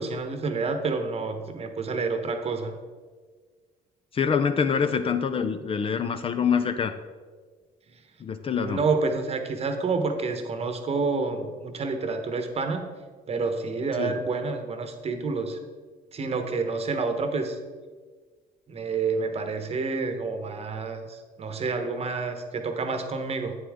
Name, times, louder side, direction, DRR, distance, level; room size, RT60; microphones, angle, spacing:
voice 1, 0.0-2.7 8.5-12.9 13.3-15.6 16.1-17.6 18.7-23.6, right 4 dB, 35° right, 7 dB, 1.0 m, -29 dB
voice 2, 4.1-7.0 8.2-8.8 14.0-14.1, left 6 dB, 35° left, 9 dB, 0.5 m, -25 dB
8.6 x 7.3 x 3.6 m, 1.5 s
cardioid pair, 110°, 17 cm